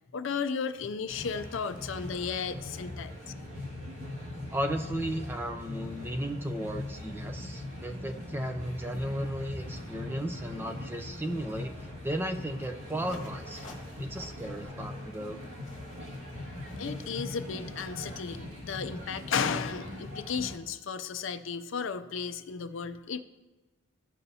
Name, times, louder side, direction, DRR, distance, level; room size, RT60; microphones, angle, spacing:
voice 1, 0.1-3.2 16.8-23.2, left 6 dB, 60° left, 10 dB, 0.4 m, -34 dB
sound 1, 1.1-20.5, left 1 dB, 70° right, 2.1 m, -41 dB
voice 2, 4.5-11.8 12.0-13.7 14.0-15.4, right 1 dB, 10° right, 5 dB, 0.4 m, -35 dB
sound 2, 13.0-18.4, left 2 dB, 35° left, 1.7 m, -52 dB
15.0 x 5.6 x 2.7 m, 1.1 s
head